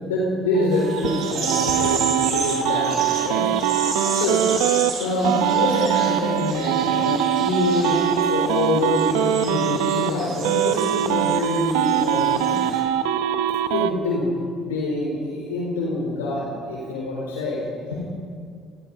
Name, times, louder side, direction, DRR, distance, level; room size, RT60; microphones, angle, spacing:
voice 1, 0.0-3.4 4.1-4.4 5.0-12.6 13.7-14.3 14.6-18.0, left 2 dB, 85° left, -3 dB, 4.0 m, -25 dB
sound 1, 0.5-4.9 5.2-10.1 10.4-13.9, right 10 dB, 75° right, 0.9 m, -22 dB
sound 2, 0.7-12.8, right 4 dB, 55° right, 7.5 m, -32 dB
28.0 x 19.5 x 5.4 m, 2.2 s
hypercardioid pair, 60°, 0 cm